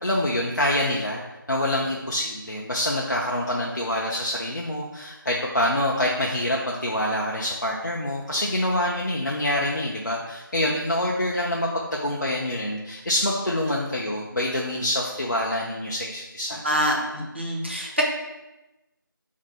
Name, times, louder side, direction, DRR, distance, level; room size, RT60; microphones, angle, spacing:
voice 1, 0.0-1.2 1.5-16.6, left 1 dB, 55° left, -3 dB, 0.4 m, -26 dB
voice 2, 16.6-18.0, equal, 30° right, -2 dB, 0.5 m, -25 dB
2.5 x 2.5 x 4.1 m, 1.0 s
figure-of-eight pair, 180°, 11 cm